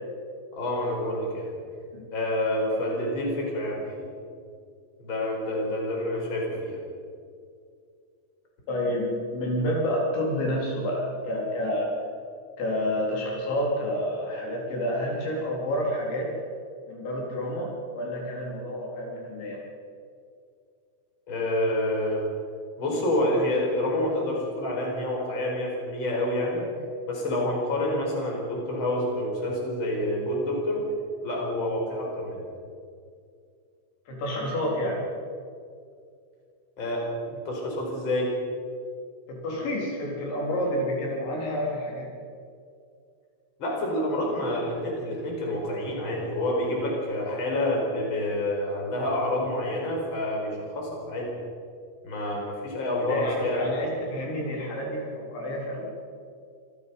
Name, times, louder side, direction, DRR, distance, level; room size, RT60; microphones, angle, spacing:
voice 1, 0.5-1.6 2.1-4.1 5.0-6.8 21.3-22.3 22.8-26.6 27.1-30.8 31.2-32.4 36.8-38.3 43.6-51.3 52.0-53.8, left 1 dB, 25° left, -2 dB, 5.3 m, -28 dB
voice 2, 8.7-11.9 12.6-16.3 16.9-19.6 34.1-35.0 39.3-42.1 53.1-55.9, equal, 75° left, -2 dB, 6.3 m, -29 dB
26.5 x 18.0 x 5.6 m, 2.3 s
omnidirectional pair, 5.2 m